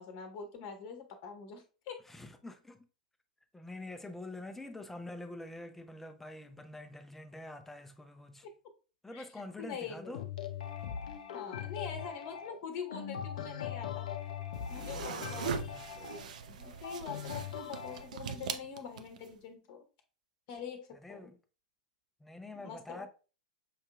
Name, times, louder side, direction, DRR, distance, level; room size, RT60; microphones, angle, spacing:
voice 1, 0.0-2.0 9.1-9.2 9.6-10.3 11.3-14.1 14.7-15.5 15.9-19.8 20.5-21.3 22.5-23.1, left 6 dB, 45° left, 0.9 m, -44 dB
voice 2, 2.1-2.8 3.5-8.5 9.0-10.2 14.9-15.9 20.9-21.4 22.2-23.1, left 2 dB, 5° left, 0.5 m, -46 dB
sound 1, 10.1-18.1, left 9 dB, 65° left, 0.5 m, -41 dB
sound 2, 14.5-19.3, right 7 dB, 65° right, 0.4 m, -41 dB
5.6 x 2.8 x 2.3 m
figure-of-eight pair, 100°, 4 cm